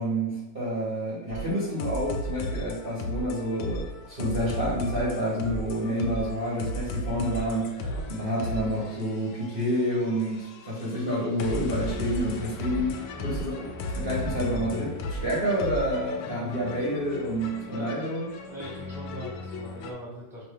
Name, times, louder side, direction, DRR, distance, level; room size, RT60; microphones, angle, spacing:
voice 1, 0.0-13.0 13.2-13.5 13.9-18.2, equal, 30° right, -9 dB, 1.2 m, -29 dB
sound 1, 1.3-19.9, left 1 dB, 75° left, 1.3 m, -35 dB
voice 2, 17.6-18.0 18.5-20.4, equal, ahead, -6 dB, 1.3 m, -41 dB
5.3 x 2.9 x 3.4 m, 0.97 s
omnidirectional pair, 2.2 m